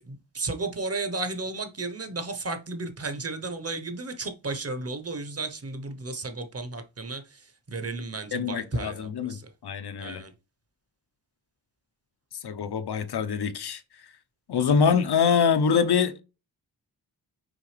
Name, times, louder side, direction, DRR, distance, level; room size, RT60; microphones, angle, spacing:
voice 1, 0.0-9.5 10.0-10.3 14.5-14.6, right 3 dB, 35° right, 1.0 m, -34 dB
voice 2, 8.3-10.2 12.4-13.8 14.5-16.2, left 6 dB, 75° left, 0.9 m, -24 dB
6.2 x 4.9 x 3.3 m
wide cardioid pair, 125°, 40 cm